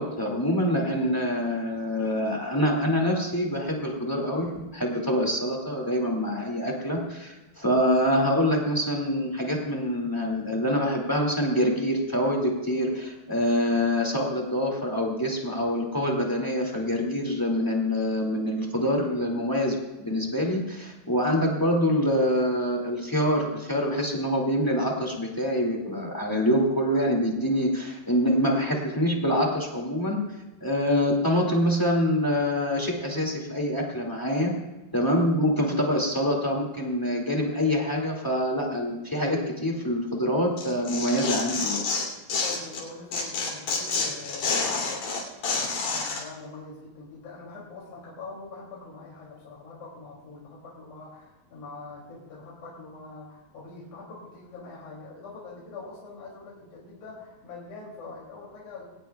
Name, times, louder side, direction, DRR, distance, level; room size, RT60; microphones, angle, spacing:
voice 1, 0.0-30.2 30.6-34.5 34.9-41.8, equal, 10° left, 0 dB, 1.1 m, -25 dB
Tearing, 40.6-42.8 43.1-46.2, left 4 dB, 80° left, 4.7 m, -28 dB
voice 2, 42.4-45.1 45.4-58.9, left 3 dB, 55° left, -5 dB, 4.1 m, -43 dB
21.0 x 18.0 x 2.3 m, 1.1 s
omnidirectional pair, 4.1 m